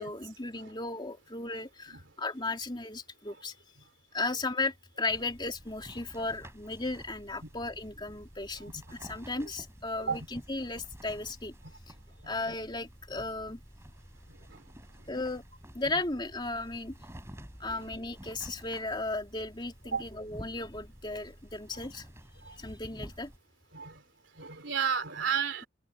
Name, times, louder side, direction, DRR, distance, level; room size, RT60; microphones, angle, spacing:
voice 1, 0.0-3.6 4.1-11.5 12.2-13.6 15.1-15.4 15.7-17.0 17.6-22.0 22.5-23.3, left 3 dB, 20° left, 3.1 m, -35 dB
sound 1, 5.1-23.4, equal, 15° right, 5.2 m, -50 dB
voice 2, 12.2-12.5 17.7-17.8 19.9-20.0 22.5-22.6 23.7-24.0 24.4-25.7, right 6 dB, 60° right, 3.9 m, -32 dB
open air
head